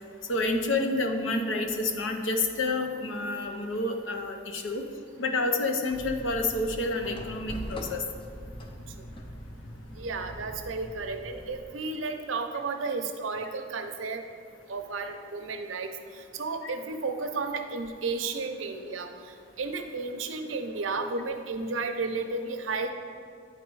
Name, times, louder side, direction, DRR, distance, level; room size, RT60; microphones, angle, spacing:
voice 1, 0.3-4.8 5.2-8.0 16.6-16.7, left 2 dB, 80° left, 4 dB, 0.7 m, -29 dB
sound 1, 5.9-11.6, equal, 25° left, 0.5 m, -42 dB
voice 2, 10.0-14.2 14.7-15.9 16.4-19.1 19.6-22.9, right 3 dB, 85° right, 6 dB, 0.6 m, -33 dB
9.3 x 4.1 x 4.7 m, 2.3 s
head